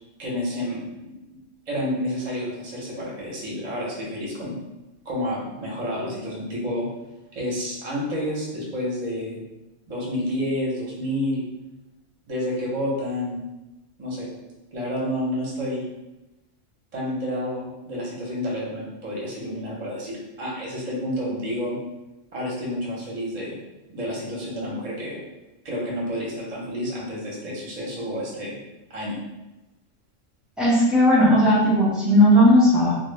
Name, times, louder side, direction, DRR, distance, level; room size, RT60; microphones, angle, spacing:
voice 1, 0.2-1.1 1.7-4.6 5.0-6.9 7.3-9.4 9.9-11.4 12.3-13.4 14.0-14.3 14.7-15.8 16.9-21.8 22.3-23.6 23.9-25.2 25.6-28.6 28.9-29.2, left 1 dB, 40° right, -4 dB, 0.6 m, -29 dB
voice 2, 30.6-33.0, equal, ahead, -8 dB, 0.3 m, -16 dB
2.0 x 2.0 x 3.1 m, 1.0 s
omnidirectional pair, 1.2 m